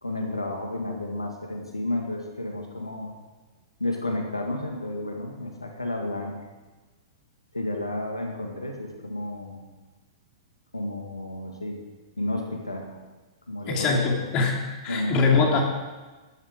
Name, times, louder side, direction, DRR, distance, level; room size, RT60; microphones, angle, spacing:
voice 1, 0.0-3.1 3.8-6.4 7.5-9.6 10.7-11.8 12.2-12.9 13.5-14.3 14.9-15.4, left 1 dB, 90° left, 2 dB, 1.9 m, -31 dB
voice 2, 13.6-14.6 14.8-15.6, left 4 dB, 35° left, 0 dB, 2.9 m, -22 dB
14.5 x 11.0 x 5.0 m, 1.3 s
figure-of-eight pair, 105°, 3 cm